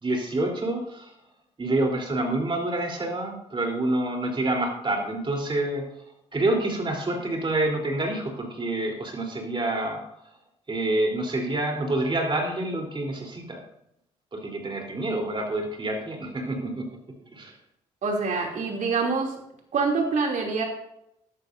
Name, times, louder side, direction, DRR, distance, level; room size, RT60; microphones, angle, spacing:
voice 1, 0.0-1.1 1.6-5.9 6.3-10.0 10.7-13.6 14.3-16.9 17.3-17.5, right 2 dB, 35° right, 1 dB, 3.6 m, -27 dB
voice 2, 18.0-19.3 19.7-20.6, right 4 dB, 60° right, 1 dB, 2.8 m, -25 dB
14.0 x 11.5 x 2.6 m, 0.79 s
hypercardioid pair, 50°, 15 cm